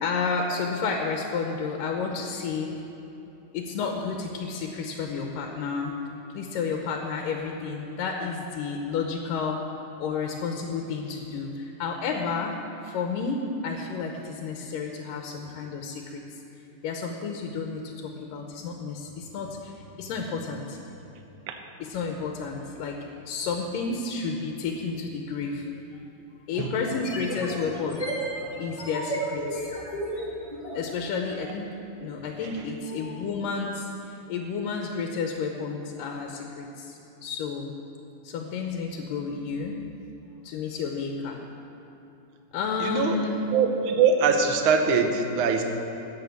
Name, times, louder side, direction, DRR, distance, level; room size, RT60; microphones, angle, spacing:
voice 1, 0.0-2.8 3.5-6.0 6.3-9.6 10.0-12.5 12.8-16.2 16.8-20.8 21.8-23.0 23.3-25.7 26.5-28.0 28.6-29.7 30.7-31.7 32.0-33.9 34.3-37.7 38.2-39.8 40.4-41.4 42.5-43.4, left 5 dB, 90° left, 2 dB, 2.5 m, -31 dB
sound 1, 25.4-25.5 26.8-30.8, right 1 dB, 15° left, 1.7 m, -33 dB
voice 2, 42.8-43.2 43.5-45.6, right 5 dB, 75° right, 4 dB, 1.2 m, -23 dB
14.0 x 6.8 x 8.3 m, 3.0 s
omnidirectional pair, 3.8 m